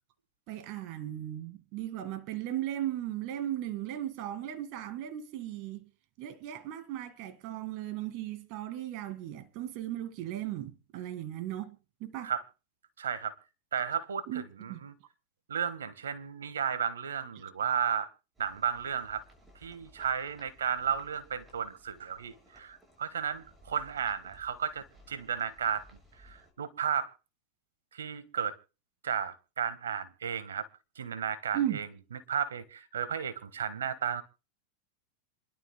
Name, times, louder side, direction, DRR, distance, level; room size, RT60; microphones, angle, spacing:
voice 1, 0.5-5.9 6.2-11.8 12.0-12.3 14.3-14.4 14.7-14.8 17.4-17.5 31.5-31.8, right 12 dB, 55° right, 1.8 m, -36 dB
voice 2, 13.0-13.3 13.7-14.9 15.5-18.1 18.4-19.2 19.6-25.9 26.1-27.1 27.9-28.5 29.0-30.7 30.9-31.9 32.3-34.2, right 8 dB, 90° right, 1.4 m, -33 dB
sound 1, 18.3-26.5, equal, 15° right, 6.8 m, -59 dB
27.0 x 12.0 x 2.2 m
hypercardioid pair, 110°, 0 cm